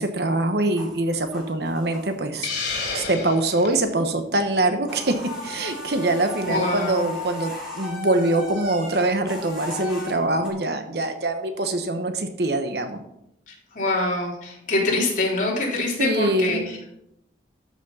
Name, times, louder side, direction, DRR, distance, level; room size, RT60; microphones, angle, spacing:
voice 1, 0.0-2.5 2.9-13.0 16.0-16.7, right 2 dB, 60° right, 7 dB, 1.1 m, -24 dB
sound 1, 0.7-2.4 2.8-3.7 4.0-4.1 4.4-10.5, left 2 dB, 5° right, 3.3 m, -36 dB
Hiss, 2.4-3.8, left 4 dB, 70° left, 3.2 m, -30 dB
voice 2, 6.4-7.0 13.5-16.9, left 2 dB, 45° left, -3 dB, 3.4 m, -25 dB
13.0 x 6.2 x 5.5 m, 0.79 s
head